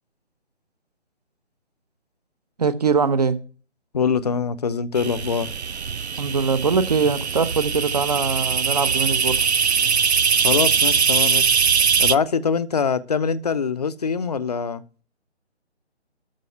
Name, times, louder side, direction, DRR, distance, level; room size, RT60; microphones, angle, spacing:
voice 1, 2.6-3.4 6.2-9.4, right 5 dB, 35° right, 1.0 m, -22 dB
voice 2, 3.9-5.5 10.4-11.5 12.0-14.8, left 6 dB, 35° left, 0.8 m, -23 dB
sound 1, 4.9-12.1, right 6 dB, 70° right, 0.7 m, -21 dB
13.0 x 5.5 x 8.1 m
figure-of-eight pair, 150°, 34 cm